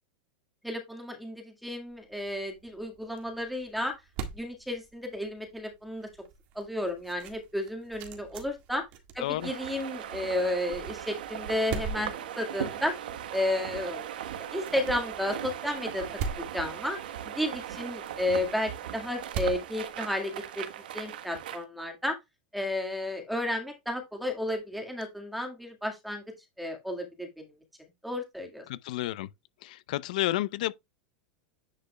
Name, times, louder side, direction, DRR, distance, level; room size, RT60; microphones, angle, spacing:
voice 1, 0.6-4.0 4.3-6.1 6.6-8.8 9.1-12.9 13.3-14.1 14.5-16.1 16.4-17.0 17.2-20.7 20.9-22.2 22.5-26.2 26.6-27.5 28.0-28.7, left 1 dB, ahead, 1.9 m, -32 dB
sound 1, 1.9-20.6, right 6 dB, 40° right, 1.7 m, -43 dB
sound 2, 9.4-21.6, right 10 dB, 90° right, 1.2 m, -38 dB
voice 2, 28.7-29.3 29.6-30.7, left 15 dB, 60° left, 0.6 m, -31 dB
10.0 x 5.3 x 2.3 m
supercardioid pair, 165°, 5 cm